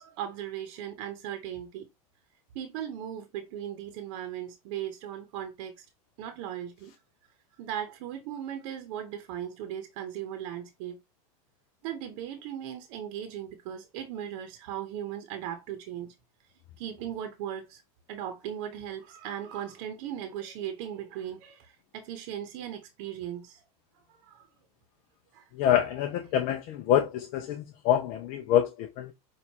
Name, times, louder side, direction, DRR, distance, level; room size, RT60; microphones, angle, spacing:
voice 1, 0.0-1.9 2.5-5.8 6.2-6.9 7.6-11.0 11.8-16.1 16.8-17.8 18.1-23.6 24.2-24.5 25.3-25.4, right 10 dB, 60° right, 0.9 m, -38 dB
voice 2, 25.6-29.1, left 10 dB, 50° left, 0.5 m, -26 dB
6.3 x 2.5 x 2.8 m
supercardioid pair, 125°, 19 cm